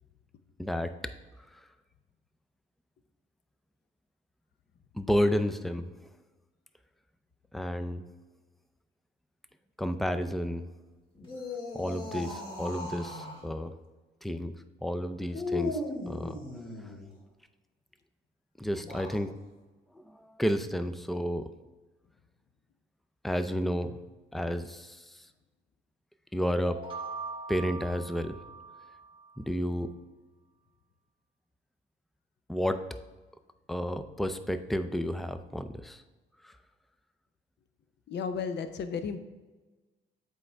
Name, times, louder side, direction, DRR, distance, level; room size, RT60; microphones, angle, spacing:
voice 1, 0.6-1.1 1.5-1.7 4.9-6.0 7.5-8.0 9.8-10.7 11.7-13.7 14.2-14.5 14.8-16.4 16.8-16.9 18.6-19.3 19.9-21.5 23.2-24.0 24.3-25.3 26.3-26.8 27.5-28.4 29.4-29.9 32.5-32.8 33.7-36.0 36.4-36.6, equal, ahead, 10 dB, 0.4 m, -31 dB
sound 1, 11.2-13.4 15.3-17.1 18.7-19.2, left 3 dB, 25° left, 1.9 m, -37 dB
sound 2, 26.7-29.4, right 4 dB, 25° right, 1.2 m, -41 dB
voice 2, 38.1-39.3, left 6 dB, 60° left, 9 dB, 0.7 m, -33 dB
7.6 x 4.8 x 3.3 m, 1.2 s
cardioid pair, 90°, 20 cm